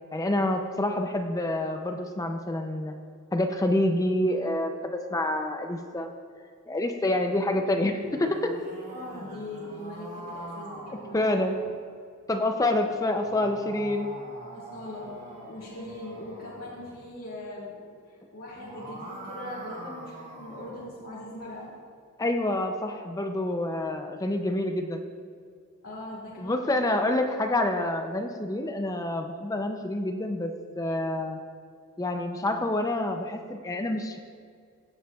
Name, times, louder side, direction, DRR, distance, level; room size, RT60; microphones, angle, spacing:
voice 1, 0.1-3.0 3.3-6.1 6.7-8.6 11.1-11.6 12.3-14.1 22.2-25.0 26.4-31.4 32.0-34.2, left 1 dB, 15° left, 5 dB, 0.4 m, -27 dB
sound 1, 7.9-11.8 12.8-17.0 18.4-20.9, right 1 dB, 35° right, 1.4 m, -44 dB
voice 2, 8.9-11.7 12.0-12.2 14.3-21.7 25.8-27.0, left 1 dB, 70° left, -9 dB, 2.3 m, -41 dB
16.5 x 7.7 x 2.3 m, 2.2 s
head